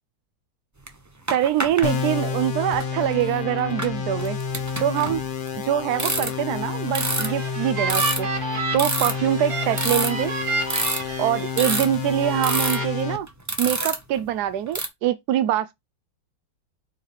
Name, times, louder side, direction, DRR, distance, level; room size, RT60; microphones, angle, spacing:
sound 1, 0.9-1.0 1.3-1.9 2.7-2.9 3.7-5.6 5.9-6.5 6.9-7.3 7.8-8.2 8.7-9.2 9.7-10.4 10.7-11.1 11.6-12.0 12.4-12.8 13.3-14.2 14.7-14.9, right 2 dB, 30° right, 0.3 m, -26 dB
voice 1, 1.3-4.4 4.8-5.2 5.6-8.3 8.7-10.3 11.2-13.3 13.6-15.7, right 12 dB, 75° right, 0.9 m, -24 dB
sound 2, 1.8-13.2, left 6 dB, 75° left, 0.4 m, -29 dB
sound 3, 6.8-11.8 12.2-12.9, right 3 dB, 50° right, 2.0 m, -30 dB
4.6 x 4.5 x 4.8 m
omnidirectional pair, 2.1 m